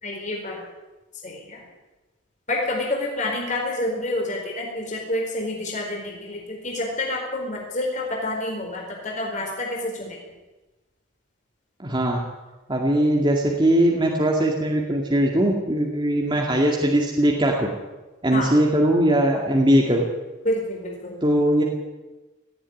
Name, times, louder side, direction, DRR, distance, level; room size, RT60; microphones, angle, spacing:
voice 1, 0.0-0.6 1.2-1.6 2.5-10.2 18.3-18.5 20.4-21.2, left 1 dB, 35° left, -1 dB, 4.5 m, -28 dB
voice 2, 11.8-12.2 12.7-17.7 18.2-20.1 21.2-21.6, right 1 dB, 20° right, -1 dB, 2.2 m, -20 dB
18.0 x 15.0 x 9.7 m, 1.1 s
head